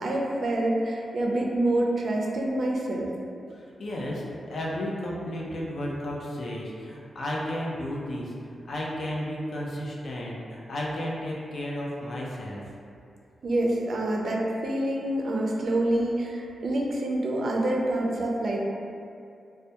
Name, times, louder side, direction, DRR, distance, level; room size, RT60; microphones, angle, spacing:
voice 1, 0.0-3.1 13.4-18.6, right 1 dB, 65° right, -1 dB, 0.3 m, -27 dB
voice 2, 3.5-8.3 8.6-12.6, left 1 dB, 60° left, -4 dB, 0.4 m, -33 dB
2.2 x 2.1 x 2.8 m, 2.5 s
cardioid pair, 100°, 0 cm